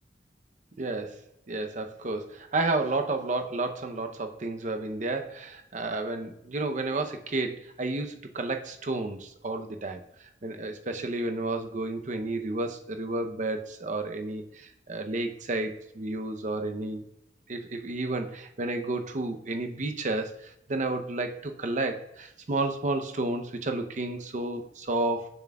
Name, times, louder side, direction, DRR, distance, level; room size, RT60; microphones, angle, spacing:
voice 1, 0.8-1.2 1.5-10.0 10.4-17.1 17.5-25.3, right 2 dB, 45° right, 6 dB, 0.7 m, -31 dB
6.9 x 6.1 x 2.3 m, 0.80 s
head